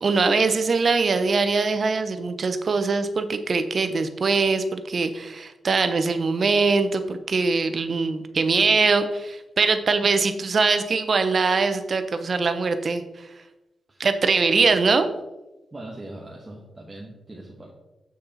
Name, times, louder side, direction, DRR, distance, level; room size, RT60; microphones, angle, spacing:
voice 1, 0.0-13.0 14.0-15.1, right 4 dB, 50° right, 9 dB, 0.8 m, -22 dB
voice 2, 15.7-17.7, right 1 dB, 25° right, -2 dB, 1.3 m, -41 dB
7.2 x 6.4 x 4.1 m, 1.0 s
cardioid pair, 95°, 0 cm